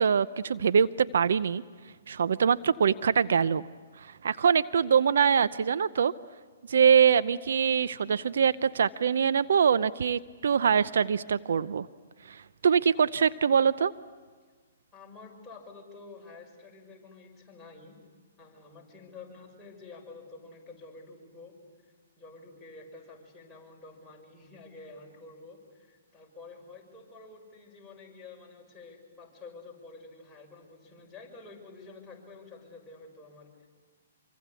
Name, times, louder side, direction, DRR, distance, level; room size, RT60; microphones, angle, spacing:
voice 1, 0.0-1.6 2.1-3.6 4.0-6.1 6.7-11.9 12.3-13.9, right 7 dB, 70° right, 15 dB, 0.7 m, -24 dB
voice 2, 14.9-18.0 18.4-21.6 22.2-33.7, left 3 dB, 10° left, -3 dB, 6.4 m, -49 dB
26.5 x 24.5 x 8.3 m, 1.5 s
hypercardioid pair, 140°, 0 cm